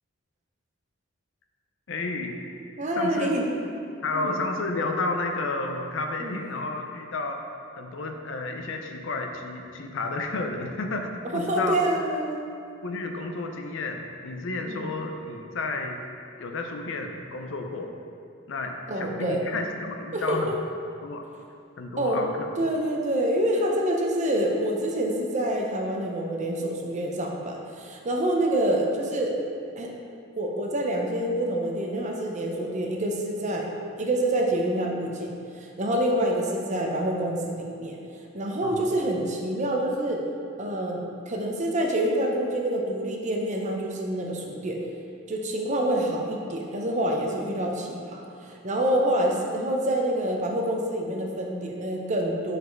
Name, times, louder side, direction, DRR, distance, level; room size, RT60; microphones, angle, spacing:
voice 1, 1.9-2.4 3.0-3.4 4.0-11.8 12.8-16.0 16.4-17.9 18.5-20.5 21.0-21.2 21.8-22.3 38.6-38.9, left 3 dB, 70° left, 4 dB, 0.5 m, -31 dB
voice 2, 2.5-3.4 4.1-4.4 6.2-6.4 11.3-12.5 14.7-14.8 18.9-19.4 20.1-20.4 22.0-22.2 22.6-29.3 29.8-29.9 30.4-33.7 34.0-35.3 35.6-38.0 38.3-40.2 40.6-44.8 45.3-52.6, right 1 dB, 40° right, 0 dB, 0.6 m, -27 dB
5.2 x 4.1 x 4.6 m, 2.4 s
head